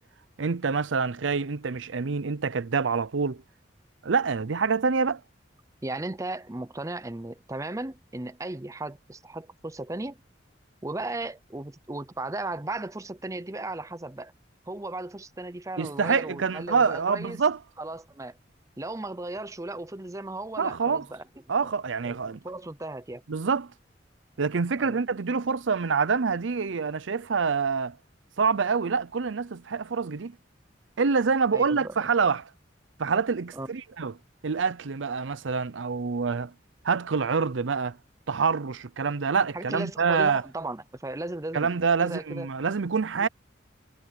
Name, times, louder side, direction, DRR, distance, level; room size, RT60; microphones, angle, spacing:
voice 1, 0.4-3.4 4.0-5.2 15.8-17.6 20.6-21.0 21.5-22.4 23.3-23.7 24.4-28.0 28.4-30.4 31.0-32.4 33.0-34.1 34.4-36.5 36.8-38.0 38.3-40.4 41.5-43.3, right 5 dB, 90° right, 0.6 m, -26 dB
voice 2, 5.8-10.2 10.8-14.3 14.7-17.4 17.8-18.4 18.8-21.2 22.0-23.2 24.8-25.0 31.5-32.0 33.5-33.7 39.5-41.7 42.0-42.5 43.2-43.3, right 2 dB, 15° right, 0.6 m, -36 dB
head